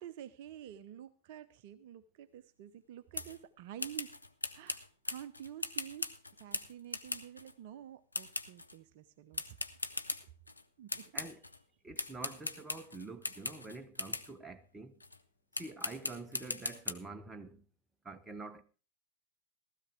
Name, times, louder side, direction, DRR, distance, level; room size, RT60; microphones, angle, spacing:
voice 1, 0.0-4.2 4.5-9.6 10.8-11.1, right 11 dB, 50° right, 0.6 m, -49 dB
sound 1, 3.1-3.4 3.8-7.5 8.1-8.8 9.3-10.6 10.9-11.6 12.0-14.3 15.0-15.2 15.5-16.9, left 2 dB, 85° left, 0.7 m, -40 dB
voice 2, 11.8-15.0 15.5-17.6 18.0-18.6, right 3 dB, 10° right, 1.1 m, -47 dB
16.0 x 13.5 x 3.4 m
figure-of-eight pair, 90°, 0 cm